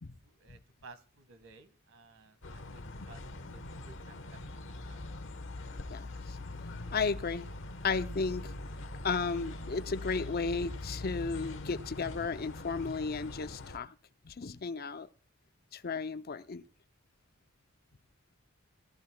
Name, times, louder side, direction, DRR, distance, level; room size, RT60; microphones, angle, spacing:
voice 1, 0.2-5.0, right 4 dB, 90° right, 10 dB, 1.8 m, -57 dB
sound 1, 2.4-13.8, left 2 dB, 65° left, 1.2 m, -42 dB
voice 2, 5.9-6.4 6.9-7.5 7.8-8.5 9.0-13.9 14.2-15.1 15.7-16.6, left 4 dB, 50° left, 12 dB, 0.6 m, -34 dB
18.0 x 13.5 x 2.3 m, 0.36 s
head